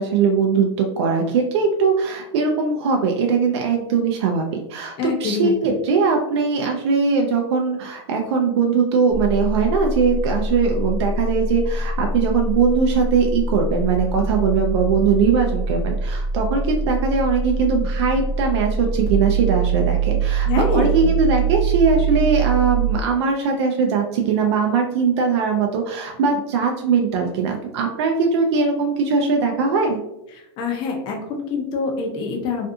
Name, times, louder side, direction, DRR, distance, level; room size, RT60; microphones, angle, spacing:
voice 1, 0.0-30.0, right 5 dB, 65° right, 2 dB, 0.4 m, -20 dB
voice 2, 5.0-5.5 20.5-21.1 30.6-32.7, left 4 dB, 30° left, 1 dB, 0.5 m, -25 dB
sound 1, 9.1-22.9, right 4 dB, 20° right, 0.5 m, -23 dB
2.5 x 2.3 x 2.6 m, 0.86 s
supercardioid pair, 150°, 15 cm